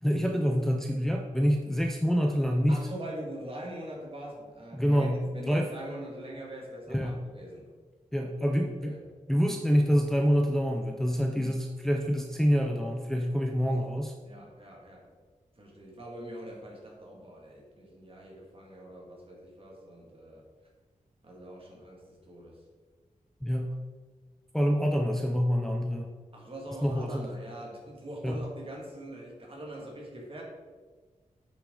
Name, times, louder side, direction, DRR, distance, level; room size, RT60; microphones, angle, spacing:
voice 1, 0.0-2.8 4.7-5.7 6.9-7.2 8.1-8.9 9.3-14.1 23.4-23.7 24.5-26.1 26.8-27.3 28.2-28.4, equal, 5° left, 0 dB, 0.6 m, -26 dB
voice 2, 2.7-7.7 8.4-8.5 8.8-9.0 11.3-11.5 13.6-13.9 14.2-15.0 15.6-20.4 21.2-22.6 26.3-30.4, right 1 dB, 40° right, -2 dB, 2.2 m, -43 dB
8.1 x 6.5 x 3.9 m, 1.4 s
wide cardioid pair, 95°, 14 cm